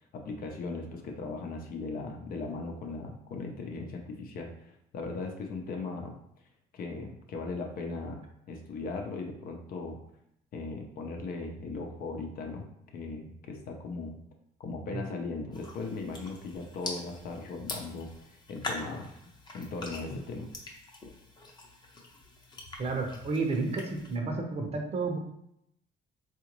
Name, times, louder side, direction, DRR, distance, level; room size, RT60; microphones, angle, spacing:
voice 1, 0.1-6.2 6.7-10.0 10.5-12.7 12.9-14.2 14.6-19.1 19.5-20.5, left 3 dB, 60° left, 2 dB, 0.7 m, -38 dB
sound 1, 15.5-24.2, left 2 dB, 25° left, 0.8 m, -43 dB
voice 2, 22.8-25.2, right 3 dB, 35° right, 2 dB, 0.7 m, -31 dB
3.8 x 2.5 x 3.0 m, 0.75 s
cardioid pair, 110°, 17 cm